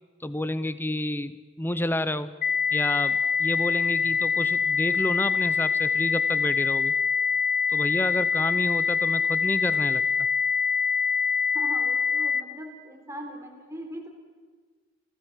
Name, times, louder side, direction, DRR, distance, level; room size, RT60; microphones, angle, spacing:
voice 1, 0.2-2.3 2.7-6.9 7.7-10.0, left 1 dB, 10° left, 14 dB, 0.7 m, -30 dB
sound 1, 2.4-12.4, left 6 dB, 45° left, 0.8 m, -24 dB
voice 2, 11.5-14.1, right 1 dB, 15° right, 1 dB, 3.6 m, -40 dB
30.0 x 16.0 x 7.4 m, 1.5 s
head